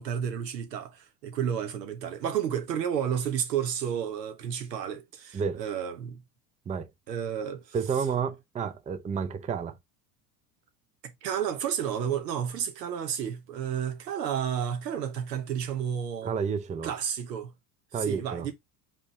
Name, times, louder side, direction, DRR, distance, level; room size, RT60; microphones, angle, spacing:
voice 1, 0.0-6.2 7.1-7.7 11.0-16.3 16.8-17.5 17.9-18.5, right 8 dB, 85° right, 1.1 m, -31 dB
voice 2, 7.7-9.8 16.2-16.9 17.9-18.5, right 6 dB, 15° right, 0.5 m, -30 dB
5.0 x 3.6 x 2.8 m
hypercardioid pair, 80°, 48 cm